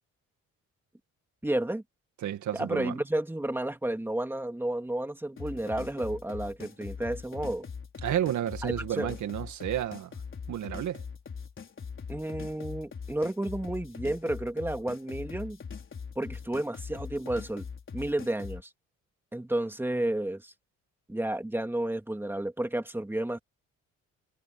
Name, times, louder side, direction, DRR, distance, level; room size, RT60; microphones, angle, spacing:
voice 1, 1.4-1.8 2.5-7.7 8.6-9.1 12.1-15.6 16.2-17.7 17.9-18.7 19.3-20.5 21.1-23.4, right 1 dB, 5° right, 2.7 m, -31 dB
voice 2, 2.2-2.9 8.0-10.1 10.5-11.0, right 11 dB, 75° right, 2.2 m, -31 dB
sound 1, 5.4-18.6, left 6 dB, 40° left, 4.4 m, -41 dB
cardioid pair, 90°, 30 cm